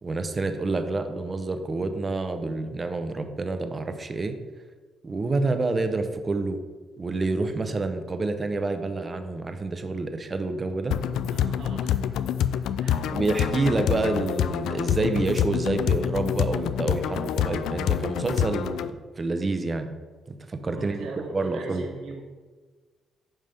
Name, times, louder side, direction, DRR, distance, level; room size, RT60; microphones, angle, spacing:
voice 1, 0.0-4.4 5.0-6.6 7.0-11.0 13.1-18.9 19.2-19.9 20.3-21.9, right 3 dB, 30° right, 7 dB, 0.7 m, -28 dB
sound 1, 10.9-18.9, left 9 dB, 85° left, 0.3 m, -27 dB
voice 2, 11.3-12.2 12.8-13.1 20.7-22.2, right 4 dB, 85° right, -2 dB, 1.8 m, -40 dB
9.0 x 5.4 x 3.4 m, 1.4 s
cardioid pair, 90°, 0 cm